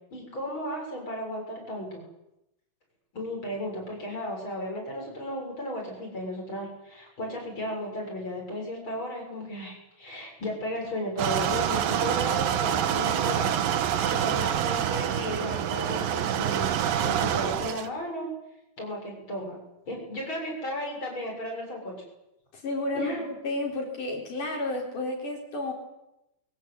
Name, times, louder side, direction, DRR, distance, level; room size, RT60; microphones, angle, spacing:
voice 1, 0.1-2.0 3.1-13.6 14.1-16.7 17.0-18.3 18.8-19.6 19.9-21.9 22.9-23.2, left 1 dB, 30° left, 0 dB, 8.0 m, -34 dB
sound 1, 11.2-17.9, right 9 dB, 70° right, 2.9 m, -26 dB
voice 2, 22.5-25.7, left 2 dB, 55° left, 1 dB, 5.6 m, -31 dB
23.5 x 23.5 x 8.4 m, 0.87 s
omnidirectional pair, 4.5 m